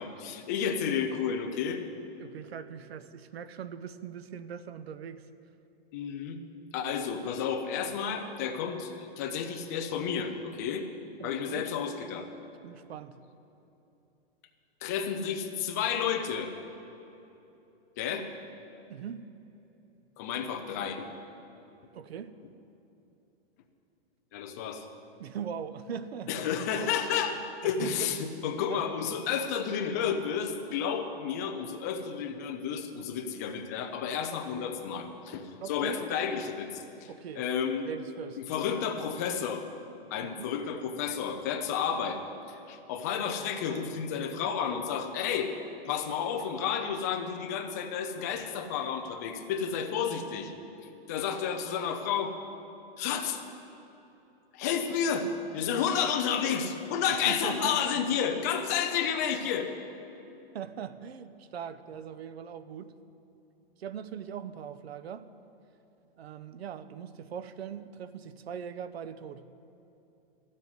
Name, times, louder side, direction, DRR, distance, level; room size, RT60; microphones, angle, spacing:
voice 1, 0.0-1.8 5.9-6.4 6.7-10.9 11.2-12.3 14.8-16.5 18.0-18.3 20.2-21.1 24.3-24.9 26.3-37.1 37.3-37.9 38.5-39.6 40.1-42.2 42.5-45.5 45.8-50.5 51.1-52.3 53.0-53.4 54.5-59.7, left 7 dB, 15° left, 5 dB, 0.5 m, -31 dB
voice 2, 2.2-5.2 11.2-11.7 12.6-13.1 18.9-19.3 21.9-22.4 25.2-26.3 27.6-28.3 28.7-28.8 35.6-36.0 37.1-37.5 37.8-38.4 40.2-40.5 57.3-57.8 60.5-62.9 63.8-65.3 66.2-69.4, right 7 dB, 80° right, 14 dB, 0.8 m, -40 dB
13.0 x 7.5 x 9.4 m, 2.9 s
hypercardioid pair, 170°, 31 cm